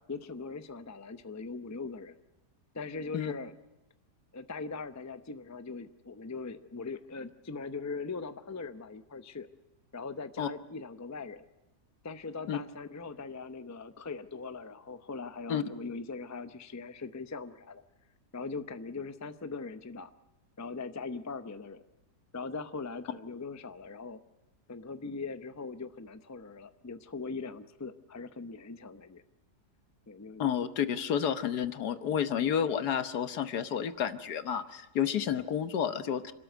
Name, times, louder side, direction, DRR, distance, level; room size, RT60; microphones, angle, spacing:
voice 1, 0.1-2.1 2.7-3.5 4.3-9.5 9.9-11.4 12.0-17.8 18.3-20.1 20.6-21.8 22.3-24.2 24.7-29.2 30.1-30.4, left 4 dB, 20° left, 10 dB, 0.4 m, -40 dB
voice 2, 30.4-36.3, left 8 dB, 75° left, 11 dB, 1.6 m, -30 dB
27.0 x 13.5 x 9.2 m, 0.97 s
omnidirectional pair, 1.7 m